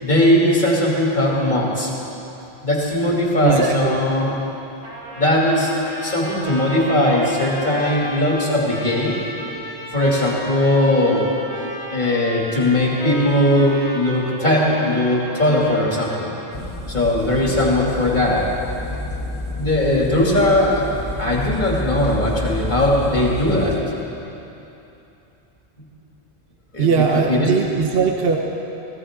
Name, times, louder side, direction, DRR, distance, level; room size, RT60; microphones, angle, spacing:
voice 1, 0.0-1.9 2.6-4.4 5.2-5.7 6.0-9.2 9.9-11.3 11.9-16.3 16.9-18.5 19.6-20.9 21.2-23.8 26.7-27.5, left 1 dB, 45° left, -4 dB, 2.7 m, -19 dB
voice 2, 3.4-4.0 26.8-28.4, right 6 dB, 60° right, 2 dB, 1.1 m, -19 dB
Trumpet, 4.8-16.4, equal, 90° right, 2.8 m, -34 dB
sound 1, 16.5-23.8, left 2 dB, 80° left, 1.9 m, -29 dB
18.0 x 16.5 x 3.7 m, 2.9 s
omnidirectional pair, 1.1 m